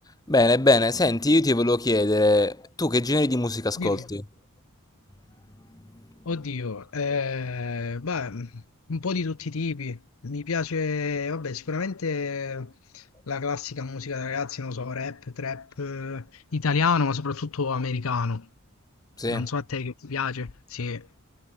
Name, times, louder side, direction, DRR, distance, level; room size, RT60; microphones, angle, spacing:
voice 1, 0.3-4.2 19.2-19.5, left 2 dB, 15° left, 1.0 m, -22 dB
voice 2, 6.3-8.6 8.9-18.5 19.3-21.1, left 4 dB, 70° left, 0.8 m, -29 dB
head